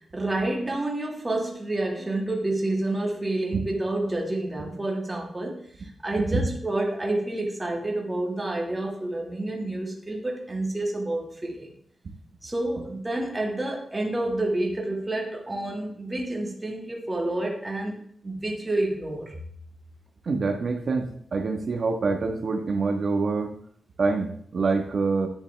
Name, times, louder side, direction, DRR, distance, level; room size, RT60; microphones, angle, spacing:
voice 1, 0.0-11.7 12.4-19.4, right 1 dB, 15° right, -1 dB, 2.0 m, -29 dB
voice 2, 20.2-23.5 24.0-25.3, right 4 dB, 45° right, 5 dB, 1.4 m, -26 dB
10.5 x 10.0 x 3.4 m, 0.62 s
wide cardioid pair, 170°, 0 cm